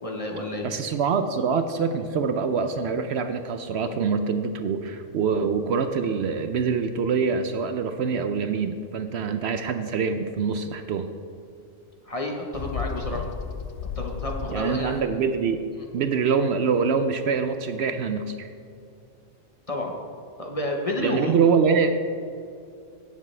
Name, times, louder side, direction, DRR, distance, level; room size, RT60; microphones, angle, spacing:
voice 1, 0.0-0.7 12.1-13.3 14.0-15.0 19.7-19.9 20.4-21.5, left 1 dB, 30° left, 1 dB, 1.1 m, -30 dB
voice 2, 0.6-11.1 14.5-15.6 15.9-18.5 21.0-22.0, right 5 dB, 65° right, 8 dB, 0.8 m, -25 dB
Bird, 12.5-15.0, left 6 dB, 55° left, 0.7 m, -33 dB
16.5 x 7.2 x 3.3 m, 2.5 s
omnidirectional pair, 1.3 m